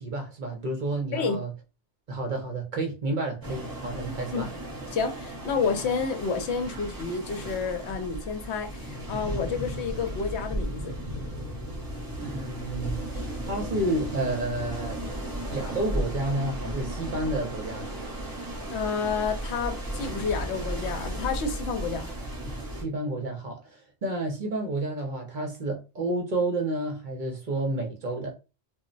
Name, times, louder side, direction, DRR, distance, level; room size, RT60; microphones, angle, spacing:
voice 1, 0.0-1.5 2.1-4.5 12.2-13.1 13.5-15.0 15.5-17.9 22.7-28.3, right 2 dB, 50° right, 0.7 m, -30 dB
sound 1, 3.4-22.8, right 1 dB, 20° right, 0.7 m, -35 dB
voice 2, 4.1-4.5 4.9-10.9 18.7-22.1, left 5 dB, 75° left, 0.8 m, -30 dB
2.2 x 2.0 x 3.8 m
omnidirectional pair, 1.2 m